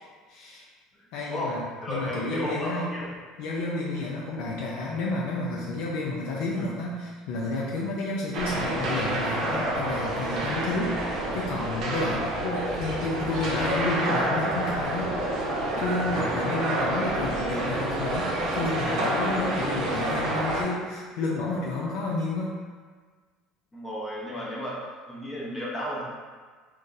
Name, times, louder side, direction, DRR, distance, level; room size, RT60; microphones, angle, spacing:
voice 1, 0.3-0.6 1.1-2.9 3.4-15.4 15.8-22.5, left 2 dB, 75° left, -4 dB, 0.4 m, -31 dB
voice 2, 1.3-3.2 23.7-24.8 25.1-26.0, equal, 20° left, -5 dB, 0.6 m, -33 dB
sound 1, 8.3-20.6, right 1 dB, 60° right, 0.7 m, -28 dB
2.6 x 2.2 x 3.9 m, 1.5 s
supercardioid pair, 100°, 0 cm